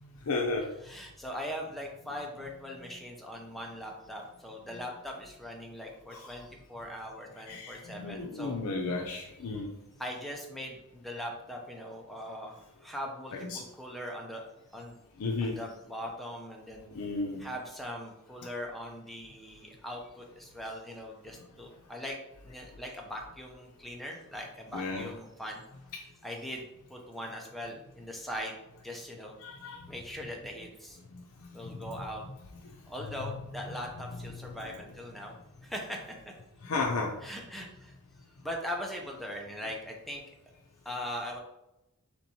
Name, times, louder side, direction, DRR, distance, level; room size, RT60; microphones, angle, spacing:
voice 1, 0.0-0.7 6.1-6.3 7.5-9.7 13.3-13.6 15.2-15.6 16.9-17.5 24.7-25.1 29.4-30.0 31.1-31.2 31.6-32.0 33.7-33.8 34.3-34.4 36.6-37.1, left 3 dB, 85° left, 0 dB, 0.5 m, -34 dB
voice 2, 0.8-8.6 10.0-14.4 14.7-15.0 15.4-17.0 17.4-22.2 22.4-25.6 26.2-28.6 28.8-29.4 29.9-31.0 31.5-32.2 32.9-35.3 35.6-36.3 37.2-37.9 38.4-40.2 40.8-41.4, equal, ahead, 0 dB, 0.6 m, -40 dB
3.5 x 3.0 x 4.0 m, 0.89 s
head